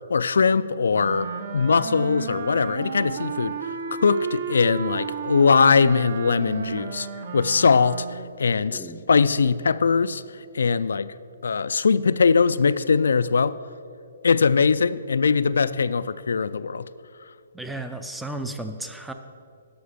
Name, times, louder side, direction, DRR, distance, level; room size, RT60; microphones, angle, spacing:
voice 1, 0.1-3.6 4.0-7.1 7.3-10.2 10.5-11.1 11.4-13.6 14.2-16.9, left 5 dB, 90° left, 14 dB, 0.3 m, -21 dB
Wind instrument woodwind instrument, 0.9-8.3, right 6 dB, 45° right, 0.7 m, -33 dB
voice 2, 8.6-9.0 17.5-19.1, right 2 dB, ahead, 6 dB, 0.4 m, -34 dB
11.5 x 6.4 x 5.1 m, 2.4 s
hypercardioid pair, 170°, 0 cm